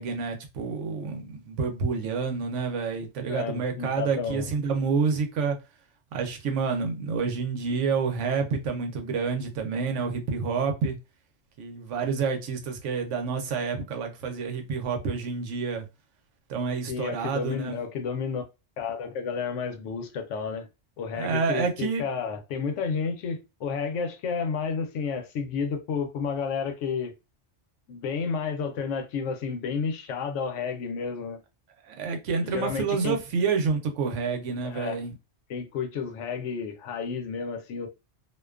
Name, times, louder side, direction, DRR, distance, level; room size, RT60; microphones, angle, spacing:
voice 1, 0.0-5.6 6.1-11.0 11.6-15.8 16.5-17.8 21.1-22.0 31.8-35.1, right 5 dB, 80° right, 1.0 m, -28 dB
voice 2, 3.3-4.5 16.9-18.4 18.8-20.7 21.0-27.1 27.9-31.4 32.4-33.2 34.6-35.0 35.5-37.9, left 5 dB, 85° left, 0.9 m, -31 dB
2.5 x 2.2 x 2.3 m
omnidirectional pair, 1.2 m